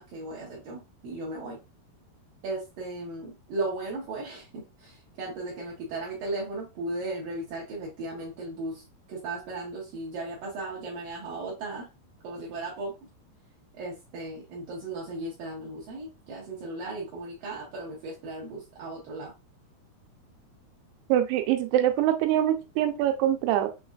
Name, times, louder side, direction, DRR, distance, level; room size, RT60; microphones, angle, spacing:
voice 1, 0.0-1.6 2.4-11.9 12.2-13.1 13.7-19.3, right 2 dB, 70° right, -4 dB, 2.3 m, -36 dB
voice 2, 21.1-23.7, right 12 dB, 85° right, 6 dB, 2.7 m, -24 dB
6.3 x 2.4 x 2.3 m, 0.26 s
omnidirectional pair, 4.7 m